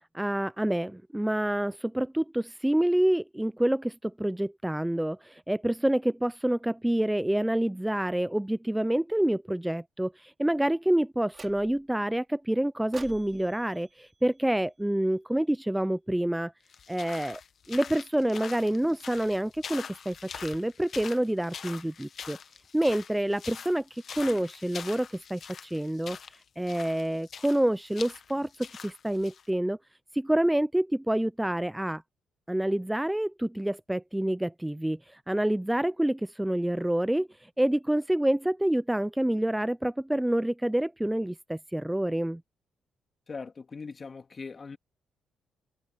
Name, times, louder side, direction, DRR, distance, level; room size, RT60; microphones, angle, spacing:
voice 1, 0.1-16.5 16.9-17.4 17.7-22.4 22.7-26.2 26.6-29.8 30.1-32.0 32.5-37.3 37.6-42.4, right 1 dB, 5° right, 0.4 m, -27 dB
sound 1, 11.3-12.0 12.9-15.2, right 4 dB, 30° right, 5.2 m, -50 dB
sound 2, 16.7-29.5, left 7 dB, 55° left, 1.2 m, -44 dB
voice 2, 43.3-44.8, left 4 dB, 35° left, 2.1 m, -40 dB
cardioid pair, 90°, 0 cm